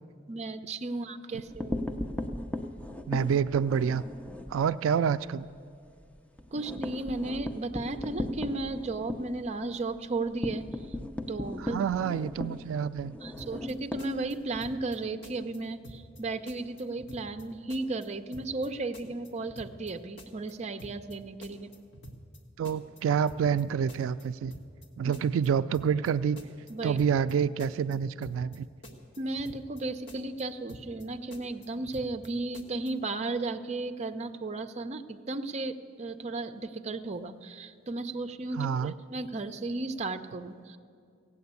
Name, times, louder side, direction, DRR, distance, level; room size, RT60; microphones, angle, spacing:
voice 1, 0.3-1.8 6.5-10.7 11.3-11.8 13.2-21.7 25.0-25.1 26.7-27.0 29.2-40.8, right 2 dB, 35° right, 8 dB, 0.5 m, -35 dB
sound 1, 1.4-4.6 5.0-5.1 5.4-5.5 5.9-14.7, left 1 dB, 5° left, 0.6 m, -37 dB
voice 2, 3.1-4.0 4.5-5.5 11.6-13.2 22.6-24.5 25.0-26.4 26.8-28.7 38.6-38.9, right 7 dB, 90° right, 14 dB, 0.3 m, -27 dB
sound 2, 13.4-13.7 14.0-15.0 15.2-15.6 15.8-16.2 16.5-17.4 17.7-18.1 18.3-18.7 18.9-19.9 20.2-20.5 20.8-21.2 21.4-22.4 22.6-23.0 23.3-23.6 23.9-24.9 25.1-25.5 25.7-26.1 26.4-27.3 27.6-28.0 28.2-28.6 28.8-29.8 30.1-30.4 30.7-31.1 31.3-32.3 32.5-32.9, equal, 60° left, 1.5 m, -48 dB
16.0 x 8.6 x 8.2 m, 2.3 s
head